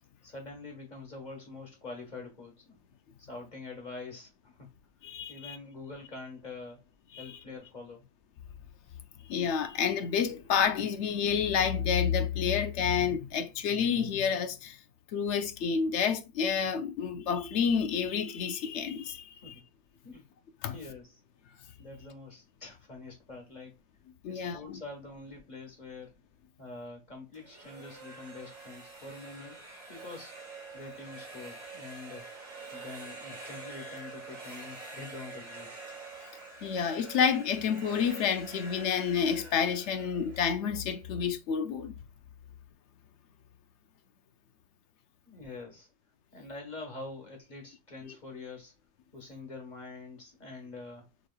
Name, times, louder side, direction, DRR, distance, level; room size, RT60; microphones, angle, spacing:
voice 1, 0.2-2.8 3.2-4.7 5.3-6.8 7.2-8.1 19.4-19.6 20.0-20.3 20.7-21.2 21.5-23.7 24.3-26.1 26.6-29.6 29.9-30.3 30.7-32.3 32.7-35.8 45.2-45.9 46.3-48.7 49.1-51.1, left 3 dB, 35° left, 1.5 m, -45 dB
voice 2, 5.0-5.6 7.1-7.3 9.3-14.8 15.1-19.5 20.6-20.7 24.2-24.8 36.6-41.9 48.1-48.2, left 7 dB, 70° left, 0.8 m, -29 dB
sound 1, 27.3-41.2, right 3 dB, 85° right, 2.6 m, -46 dB
6.1 x 3.2 x 2.2 m
omnidirectional pair, 1.4 m